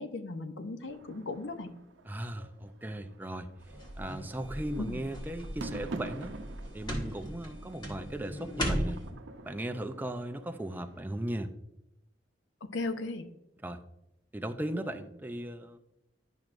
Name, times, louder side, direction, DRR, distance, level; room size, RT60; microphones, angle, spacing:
voice 1, 0.0-1.7 4.8-5.0 12.7-13.3, left 3 dB, 75° left, 9 dB, 0.7 m, -36 dB
sound 1, 0.8-11.0, right 3 dB, 75° right, 0.7 m, -48 dB
voice 2, 2.1-3.5 4.0-6.4 6.7-9.0 9.4-11.5 13.6-13.8 14.3-15.8, right 1 dB, 10° right, 6 dB, 0.4 m, -37 dB
sound 2, 3.6-9.1, equal, 25° left, 1.5 m, -37 dB
10.5 x 5.9 x 2.5 m, 0.86 s
head